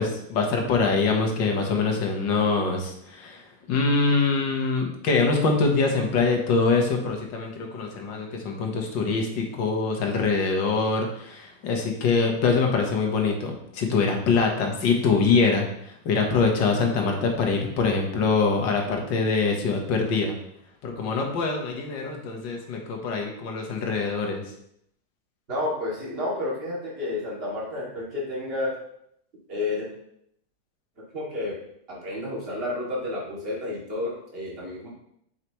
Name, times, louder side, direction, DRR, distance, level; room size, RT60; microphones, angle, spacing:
voice 1, 0.0-20.4 20.8-24.4, left 4 dB, 80° left, 2 dB, 1.9 m, -24 dB
voice 2, 25.5-28.8 29.5-29.9 31.0-31.6 31.9-34.9, left 2 dB, 30° right, -6 dB, 2.4 m, -31 dB
7.9 x 5.7 x 3.0 m, 0.74 s
omnidirectional pair, 2.0 m